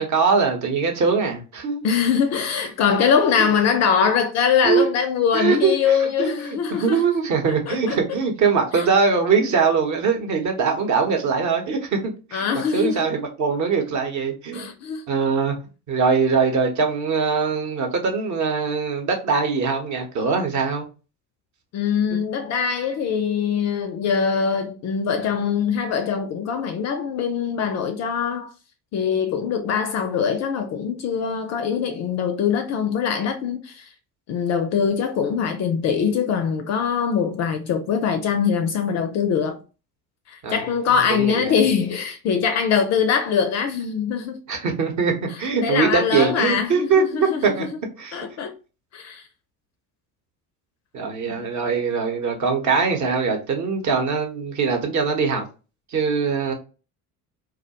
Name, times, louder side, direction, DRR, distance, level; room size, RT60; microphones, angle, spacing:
voice 1, 0.0-1.8 3.4-3.5 4.6-4.9 5.3-14.7 15.1-15.6 15.9-20.9 40.4-40.6 41.1-41.6 44.5-47.6 48.0-48.2 50.9-55.5 55.9-56.5, right 5 dB, 40° right, 0.8 m, -22 dB
voice 2, 1.8-7.0 7.5-8.0 8.7-8.9 12.3-13.1 14.5-15.1 21.7-28.5 28.9-33.9 34.3-39.6 40.3-44.4 45.6-47.7 48.1-48.5 48.9-49.2 51.2-51.5, left 7 dB, 40° left, 0.4 m, -23 dB
2.3 x 2.1 x 2.8 m
hypercardioid pair, 65°, 46 cm